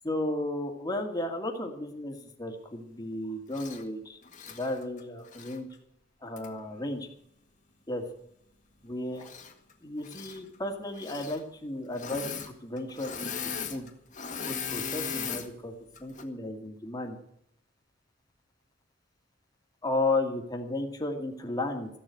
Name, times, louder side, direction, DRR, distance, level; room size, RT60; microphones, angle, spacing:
voice 1, 0.0-4.2 4.5-5.7 6.2-7.1 7.9-8.0 8.8-9.3 9.8-13.3 13.7-13.9 14.5-15.7 16.0-17.2 19.8-21.9, left 2 dB, 20° left, 3 dB, 2.1 m, -33 dB
Engine / Mechanisms, 3.5-3.8 4.2-5.6 6.4-6.5 9.2-9.7 10.0-10.4 10.9-11.4 11.9-12.5 12.8-15.5 16.0-16.2, left 6 dB, 40° left, 1.8 m, -38 dB
15.0 x 7.4 x 9.5 m, 0.74 s
head